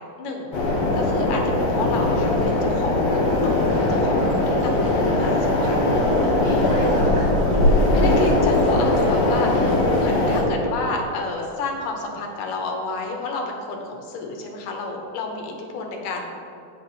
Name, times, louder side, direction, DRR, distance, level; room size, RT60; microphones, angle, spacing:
voice 1, 0.2-5.8 6.2-6.7 7.9-16.2, left 3 dB, 70° left, 1 dB, 2.5 m, -30 dB
sound 1, 0.5-10.4, left 2 dB, 55° left, 2.2 m, -20 dB
voice 2, 4.1-4.5 5.2-7.5, equal, 70° right, -7 dB, 0.8 m, -33 dB
16.0 x 5.7 x 3.1 m, 2.8 s
omnidirectional pair, 4.1 m